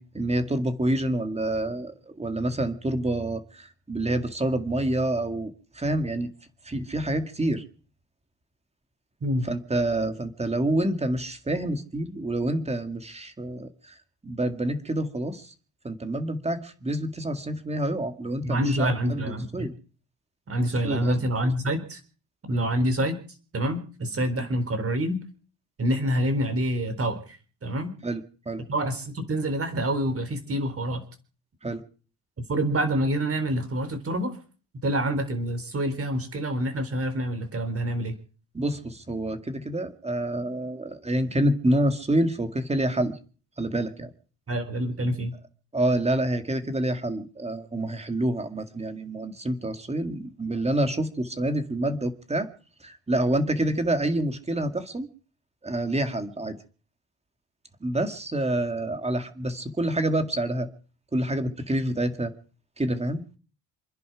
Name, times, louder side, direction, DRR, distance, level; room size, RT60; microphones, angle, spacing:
voice 1, 0.0-6.3 6.7-7.6 9.5-13.9 14.2-15.5 15.8-19.7 20.8-21.2 22.5-22.7 24.4-24.5 28.0-28.6 31.6-31.8 38.5-43.2 43.6-44.1 45.7-52.5 52.8-55.1 55.6-56.6 57.8-60.7 61.1-62.3 62.8-63.2, right 1 dB, 15° right, 8 dB, 2.1 m, -27 dB
voice 2, 18.4-19.7 20.5-22.0 22.5-23.2 23.5-25.2 25.8-27.9 28.7-31.0 32.5-34.4 34.8-38.1 44.5-45.3, equal, 35° right, 9 dB, 4.0 m, -27 dB
28.5 x 10.5 x 4.8 m, 0.40 s
cardioid pair, 120°, 41 cm